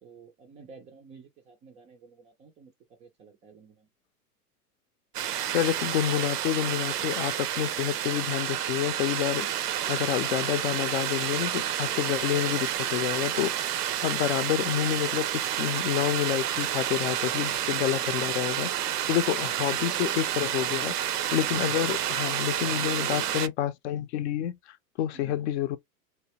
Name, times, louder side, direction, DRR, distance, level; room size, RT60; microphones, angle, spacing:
voice 1, 0.0-2.7 3.0-3.9 19.4-19.5 20.4-20.8 21.6-21.8 22.7-23.5 25.1-25.5, right 6 dB, 15° right, 0.4 m, -49 dB
sound 1, 5.1-23.5, right 11 dB, 80° right, 0.6 m, -30 dB
voice 2, 5.5-13.7 14.0-25.8, left 12 dB, 50° left, 0.6 m, -29 dB
3.2 x 2.9 x 2.9 m
hypercardioid pair, 105°, 46 cm